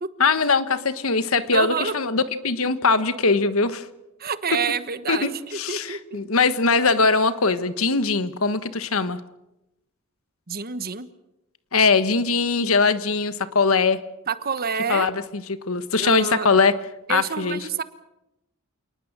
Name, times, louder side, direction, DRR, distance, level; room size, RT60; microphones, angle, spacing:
voice 1, 0.2-3.9 5.1-9.2 11.7-14.0 14.9-16.8 17.1-17.6, left 4 dB, 70° left, 12 dB, 1.4 m, -21 dB
voice 2, 1.5-1.9 4.2-6.2 10.5-11.1 14.3-15.1 16.0-16.5 17.1-17.8, right 6 dB, 45° right, 13 dB, 1.2 m, -28 dB
28.0 x 19.0 x 7.5 m, 0.91 s
head